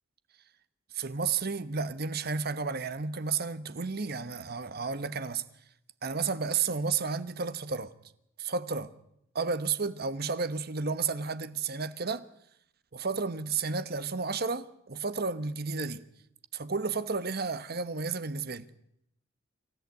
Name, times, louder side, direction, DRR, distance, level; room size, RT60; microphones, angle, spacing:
voice 1, 0.9-5.4 6.0-7.9 8.4-8.9 9.3-12.2 12.9-16.0 16.5-18.7, right 5 dB, 50° right, 1.1 m, -32 dB
26.0 x 13.5 x 9.3 m
head